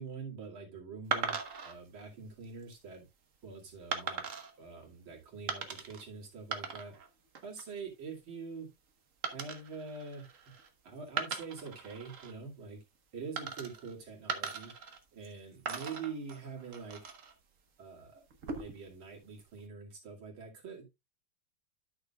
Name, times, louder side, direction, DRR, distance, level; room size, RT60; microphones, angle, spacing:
voice 1, 0.0-3.1 3.4-4.2 4.6-6.9 7.4-8.7 9.3-10.3 10.8-12.8 13.1-14.7 15.1-17.1 17.8-18.2 18.5-20.9, right 5 dB, 75° right, 3.2 m, -45 dB
sound 1, 1.1-1.7 2.4-2.8 3.9-4.5 5.5-6.0 6.3-7.1 7.4-7.8 9.2-10.7 11.1-12.3 13.4-13.9 14.3-15.3 15.7-17.3 18.3-18.9, right 5 dB, 45° right, 1.3 m, -39 dB
12.0 x 6.6 x 2.3 m
omnidirectional pair, 2.2 m